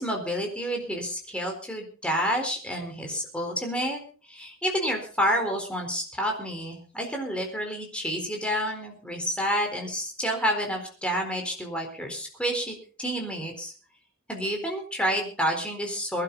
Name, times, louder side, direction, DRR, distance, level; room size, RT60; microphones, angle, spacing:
voice 1, 0.0-4.0 4.3-13.7 14.3-16.2, equal, 5° left, 2 dB, 4.2 m, -29 dB
22.5 x 11.5 x 4.0 m, 0.40 s
head